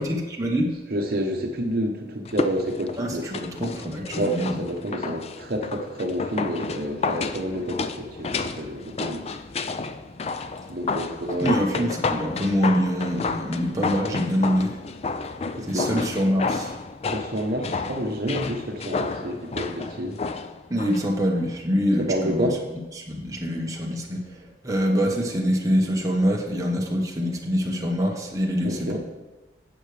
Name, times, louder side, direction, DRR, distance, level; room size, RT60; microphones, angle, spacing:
voice 1, 0.0-0.7 3.0-4.6 11.4-14.8 15.4-16.8 20.7-29.0, equal, 20° right, -1 dB, 1.0 m, -25 dB
voice 2, 0.9-3.4 4.1-9.3 10.7-11.8 15.6-15.9 17.1-20.2 22.0-22.6 28.6-29.0, equal, 55° right, 3 dB, 0.9 m, -29 dB
sound 1, 2.2-21.1 21.4-21.5, left 4 dB, 35° left, 0.4 m, -31 dB
11.5 x 7.9 x 3.4 m, 1.1 s
head